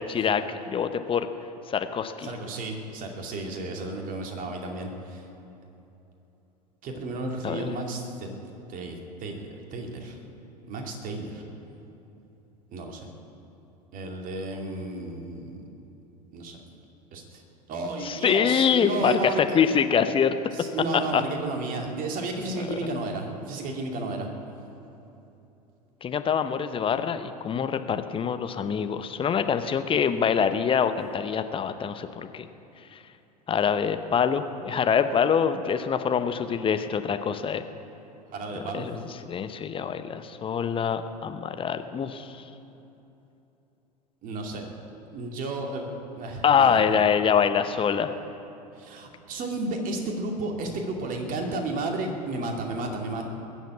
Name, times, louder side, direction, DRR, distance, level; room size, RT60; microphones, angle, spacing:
voice 1, 0.1-1.3 1.7-2.3 7.4-7.6 18.0-20.4 20.9-21.2 22.5-22.9 26.0-32.5 32.9-33.0 33.5-37.6 38.7-42.4 46.4-48.1, left 7 dB, 25° left, 10 dB, 0.8 m, -25 dB
voice 2, 2.2-5.2 6.8-8.4 8.7-10.2 10.6-11.4 12.7-13.1 13.9-15.6 16.3-16.6 17.1-17.4 17.7-19.6 20.5-24.3 38.3-38.9 44.2-44.7 45.1-47.0 48.7-53.2, right 2 dB, 40° right, 2 dB, 2.4 m, -33 dB
20.5 x 7.4 x 8.4 m, 3.0 s
figure-of-eight pair, 80°, 21 cm